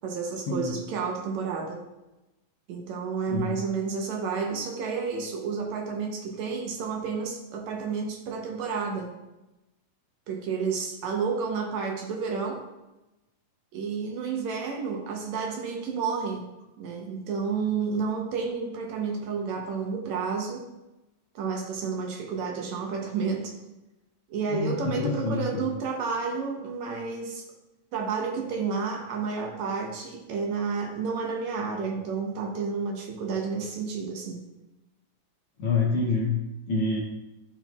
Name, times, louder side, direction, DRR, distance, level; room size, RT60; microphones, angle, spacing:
voice 1, 0.0-1.8 2.7-9.1 10.3-12.6 13.7-16.4 16.8-20.6 21.4-23.5 24.3-27.5 27.9-34.4, right 5 dB, 70° right, 1 dB, 1.9 m, -31 dB
voice 2, 3.3-3.6 24.5-25.7 35.6-37.0, left 3 dB, 80° left, -3 dB, 1.2 m, -27 dB
12.0 x 4.5 x 2.3 m, 1.0 s
omnidirectional pair, 3.7 m